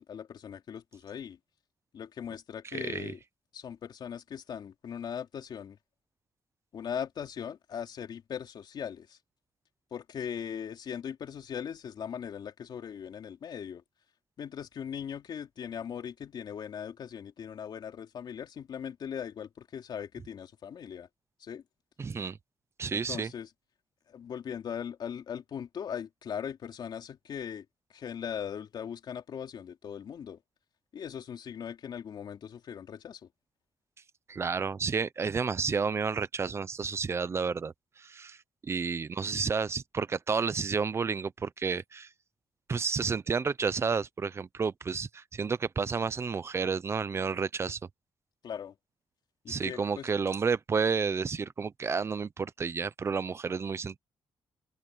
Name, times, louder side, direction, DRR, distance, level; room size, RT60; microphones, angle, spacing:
voice 1, 0.0-1.4 1.9-3.2 3.5-5.8 6.7-9.2 9.9-13.8 14.4-21.1 21.4-21.6 22.9-23.5 24.1-27.6 27.9-30.4 30.9-33.2 48.4-48.7 49.4-50.1, left 8 dB, 60° left, 3.3 m, -39 dB
voice 2, 2.7-3.1 22.0-22.4 22.8-23.3 34.3-38.4 38.6-42.1 42.7-47.8 49.5-54.0, right 5 dB, 30° right, 0.8 m, -31 dB
cardioid pair, 130°, 8 cm